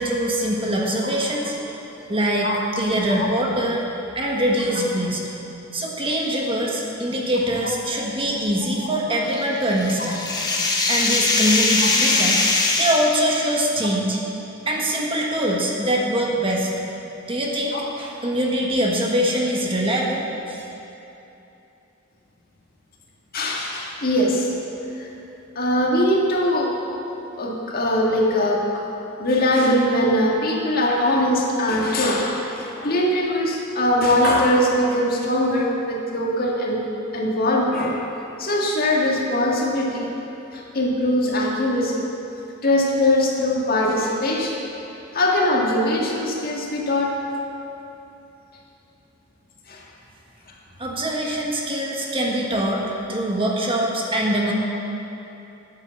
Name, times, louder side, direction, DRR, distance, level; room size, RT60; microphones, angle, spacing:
voice 1, 0.0-1.6 1.8-2.5 2.7-5.2 5.7-10.2 10.9-12.4 12.8-14.2 14.7-16.7 17.3-20.7 50.8-54.5, right 1 dB, 25° right, -1 dB, 1.4 m, -23 dB
sound 1, 9.3-13.1, left 3 dB, 20° left, 1.2 m, -21 dB
voice 2, 23.3-24.5 25.0-25.1 25.6-26.8 27.4-28.8 29.2-36.8 37.1-38.0 38.4-40.1 40.5-42.1 42.6-44.6 45.1-47.2 49.7-49.8, left 1 dB, 45° left, -2 dB, 1.8 m, -21 dB
11.5 x 8.4 x 7.4 m, 3.0 s
head